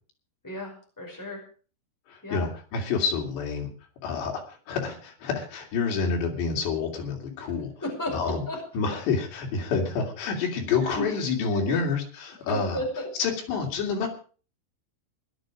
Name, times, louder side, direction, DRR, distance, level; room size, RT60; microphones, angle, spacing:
voice 1, 0.4-1.4 2.2-2.5 7.8-8.6 10.9-11.0 11.7-11.8 12.5-13.1, left 1 dB, 5° left, 0 dB, 5.1 m, -33 dB
voice 2, 2.1-3.7 4.0-7.7 8.1-8.4 8.7-12.8 13.2-14.1, left 5 dB, 85° left, 1 dB, 5.0 m, -28 dB
17.0 x 11.5 x 5.0 m, 0.39 s
omnidirectional pair, 4.9 m